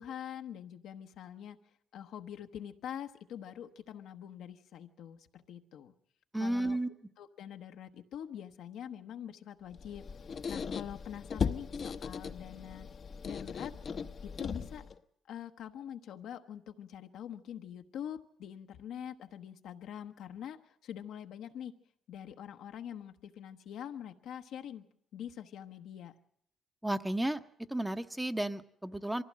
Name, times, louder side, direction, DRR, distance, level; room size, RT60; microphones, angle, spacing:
voice 1, 0.0-1.6 1.9-5.9 6.3-6.8 7.2-10.0 10.5-12.9 13.2-13.7 14.2-14.9 15.3-21.7 22.1-24.8 25.1-26.2, left 9 dB, 80° left, 6 dB, 1.0 m, -44 dB
voice 2, 6.3-6.9 26.8-27.4 27.7-29.2, right 1 dB, 10° right, 9 dB, 0.8 m, -33 dB
Squeak, 9.7-15.0, left 6 dB, 45° left, 0.7 m, -38 dB
23.0 x 15.5 x 7.4 m, 0.69 s
cardioid pair, 90°, 0 cm